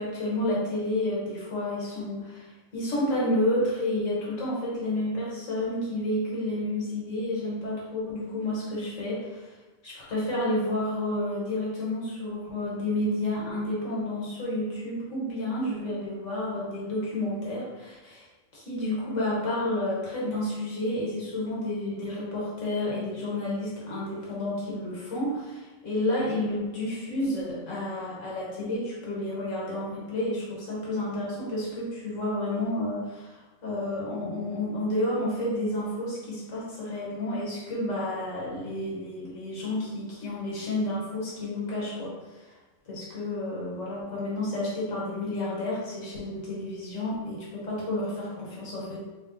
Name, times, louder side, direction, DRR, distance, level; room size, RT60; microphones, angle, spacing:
voice 1, 0.0-9.5 9.8-18.2 18.5-42.5 42.9-49.0, left 1 dB, 70° left, -6 dB, 1.4 m, -30 dB
3.5 x 2.8 x 2.5 m, 1.2 s
omnidirectional pair, 1.4 m